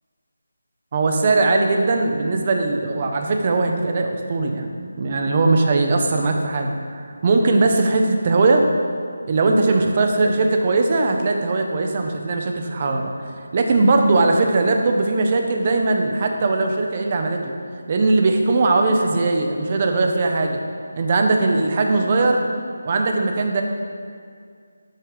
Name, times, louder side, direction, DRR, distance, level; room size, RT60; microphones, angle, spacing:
voice 1, 0.9-8.7 9.3-17.5 17.9-20.6 21.0-22.4 22.8-23.6, right 3 dB, 35° right, 3 dB, 0.7 m, -20 dB
6.6 x 5.7 x 4.9 m, 2.2 s
figure-of-eight pair, 165°, 0 cm